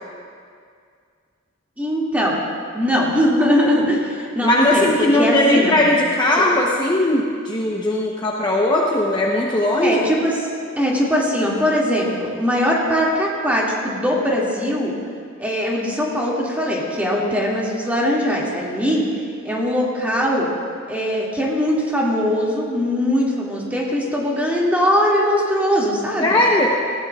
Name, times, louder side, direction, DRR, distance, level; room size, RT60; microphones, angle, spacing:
voice 1, 1.8-2.4 2.7-5.8 8.5-8.6 9.8-10.4 10.8-14.9 15.4-19.1 19.4-20.5 20.9-26.4, equal, 10° right, -5 dB, 2.2 m, -21 dB
voice 2, 4.4-10.0 26.2-26.7, left 1 dB, 20° left, -3 dB, 0.8 m, -18 dB
18.5 x 15.5 x 2.4 m, 2.2 s
head